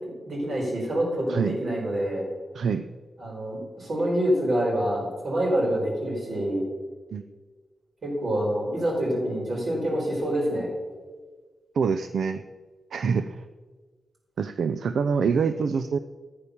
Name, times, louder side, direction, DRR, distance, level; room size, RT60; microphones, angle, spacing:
voice 1, 0.3-2.3 3.2-6.6 8.0-10.7, right 1 dB, 60° right, -2 dB, 5.3 m, -26 dB
voice 2, 2.5-2.9 7.1-7.2 11.7-12.4 12.9-13.4 14.4-16.0, right 5 dB, 85° right, 10 dB, 0.5 m, -25 dB
14.0 x 8.8 x 7.0 m, 1.4 s
wide cardioid pair, 110°, 0 cm